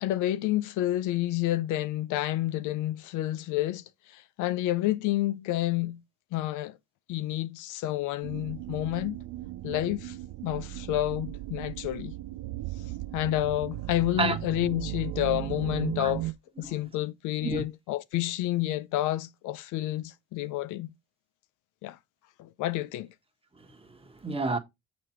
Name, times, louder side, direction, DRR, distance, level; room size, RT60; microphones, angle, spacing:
voice 1, 0.0-6.0 6.3-6.8 7.1-9.2 9.6-10.2 10.4-12.1 13.1-16.2 16.6-20.9 21.8-22.0 22.4-23.1, left 15 dB, 90° left, 0.5 m, -29 dB
sound 1, 8.2-16.3, right 17 dB, 85° right, 0.5 m, -36 dB
voice 2, 23.6-24.6, right 3 dB, 20° right, 1.3 m, -31 dB
6.5 x 4.2 x 4.4 m
cardioid pair, 90°, 30 cm